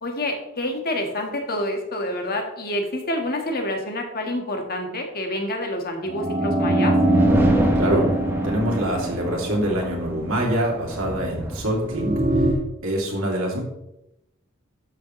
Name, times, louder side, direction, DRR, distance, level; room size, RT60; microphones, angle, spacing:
voice 1, 0.0-7.0, left 1 dB, 45° left, 2 dB, 1.7 m, -27 dB
sound 1, 6.1-10.0 11.8-12.5, right 1 dB, 35° right, 1.1 m, -22 dB
sound 2, 7.0-12.4, right 1 dB, 10° right, 1.4 m, -30 dB
voice 2, 7.7-8.0 8.4-12.1 12.8-13.6, right 1 dB, 80° right, -2 dB, 2.8 m, -24 dB
12.5 x 6.8 x 3.2 m, 0.87 s
head